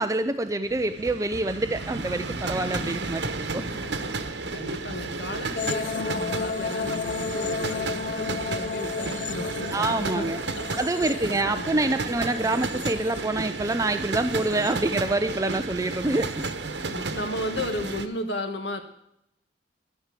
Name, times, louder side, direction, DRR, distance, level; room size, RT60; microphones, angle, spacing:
voice 1, 0.0-3.6 9.7-10.4 10.7-16.5, right 2 dB, 20° right, 9 dB, 0.5 m, -26 dB
sound 1, 0.6-18.1, right 3 dB, 80° right, 1.2 m, -33 dB
voice 2, 3.7-10.6 11.0-12.1 16.9-18.8, left 1 dB, 80° left, 6 dB, 1.8 m, -35 dB
sound 2, 5.6-13.7 14.1-15.0 16.2-16.5, left 5 dB, 50° left, 0.4 m, -33 dB
12.0 x 10.0 x 7.5 m, 0.77 s
head